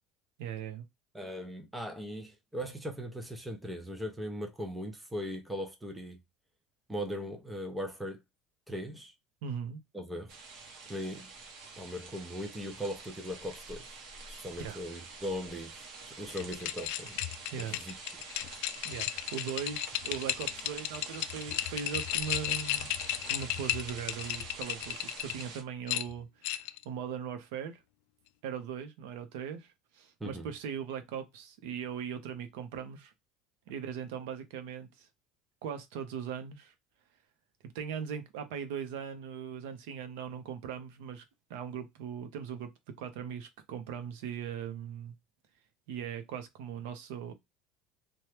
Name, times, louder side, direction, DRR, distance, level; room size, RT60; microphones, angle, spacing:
voice 1, 0.4-0.8 9.4-9.8 14.6-14.8 17.5-17.8 18.8-22.9 23.2-27.8 28.4-33.1 33.7-35.1 35.6-36.7 37.7-41.2 41.5-42.7 43.0-45.1 45.9-47.3, right 8 dB, 75° right, 0.7 m, -39 dB
voice 2, 1.1-6.2 6.9-8.2 8.7-9.1 9.9-10.3 10.9-11.3 11.8-14.0 14.3-17.2 17.6-17.9 30.2-30.5, equal, 5° right, 0.5 m, -39 dB
sound 1, 10.3-25.6, right 4 dB, 45° right, 0.8 m, -47 dB
sound 2, 16.3-25.4 25.9-26.8, left 14 dB, 65° left, 0.3 m, -34 dB
2.9 x 2.3 x 3.1 m
cardioid pair, 180°, 0 cm